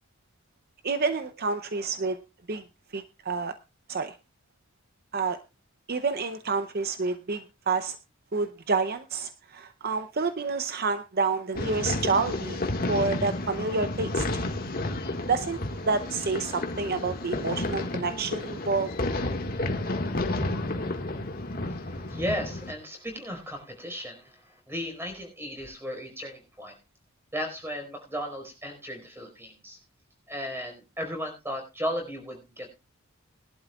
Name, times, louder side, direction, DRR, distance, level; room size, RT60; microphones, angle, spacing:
voice 1, 0.8-2.2 2.5-2.6 2.9-3.5 3.9-4.1 5.1-5.4 5.9-8.0 8.3-12.6 12.9-14.3 15.3-18.9, right 4 dB, 45° right, 10 dB, 0.7 m, -28 dB
sound 1, 11.6-22.7, left 2 dB, 45° left, 1.7 m, -31 dB
voice 2, 21.7-26.8 27.3-29.8 30.3-32.7, equal, 10° right, 4 dB, 4.7 m, -35 dB
21.0 x 11.5 x 2.4 m, 0.27 s
head